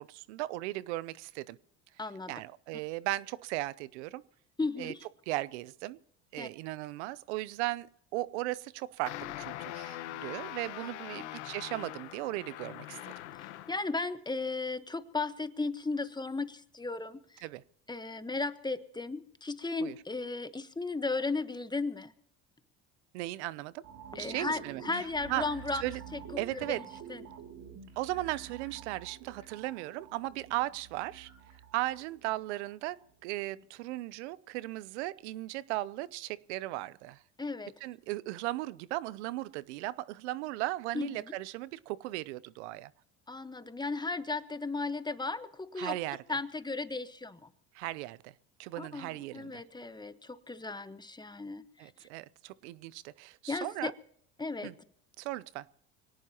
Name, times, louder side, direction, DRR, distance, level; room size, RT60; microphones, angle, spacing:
voice 1, 0.0-1.6 2.3-4.2 4.8-4.9 5.3-6.0 6.3-13.1 17.4-17.6 19.8-20.0 23.1-23.8 24.2-25.5 25.8-26.0 26.4-26.8 28.0-31.3 31.7-37.2 37.8-42.9 45.8-46.2 47.7-48.3 48.6-49.6 51.8-53.9 54.6-54.7 55.2-55.7, right 17 dB, 85° right, 20 dB, 0.7 m, -37 dB
voice 2, 2.0-2.3 4.6-5.1 6.4-6.5 11.1-11.3 13.7-17.4 17.9-22.1 24.1-26.2 26.5-27.2 37.4-37.7 40.9-41.1 43.3-46.0 46.3-47.4 48.8-51.9 53.5-53.9 54.4-54.7, left 3 dB, 10° left, 11 dB, 1.2 m, -35 dB
sound 1, 9.1-13.9, left 14 dB, 90° left, 1.3 m, -42 dB
sound 2, 23.8-33.1 33.5-33.6, right 7 dB, 55° right, 2.8 m, -49 dB
24.5 x 18.0 x 3.0 m, 0.68 s
supercardioid pair, 80°, 33 cm